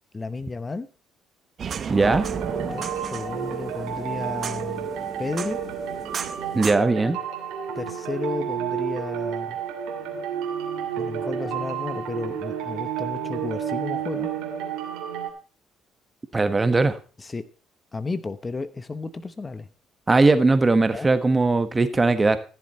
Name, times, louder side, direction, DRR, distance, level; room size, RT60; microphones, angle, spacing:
voice 1, 0.1-0.9 2.7-4.9 5.2-5.6 7.7-9.6 11.0-14.3 17.2-17.4 17.9-19.7 20.9-21.1, left 3 dB, 30° left, 13 dB, 0.9 m, -33 dB
sound 1, 1.6-6.8, right 7 dB, 50° right, 0.8 m, -34 dB
voice 2, 1.9-2.3 6.5-7.2 16.3-17.0 20.1-22.4, right 3 dB, 25° right, 11 dB, 1.3 m, -19 dB
sound 2, 2.0-15.3, right 8 dB, 80° right, 2.5 m, -31 dB
14.5 x 7.4 x 4.3 m, 0.37 s
supercardioid pair, 65°, 0 cm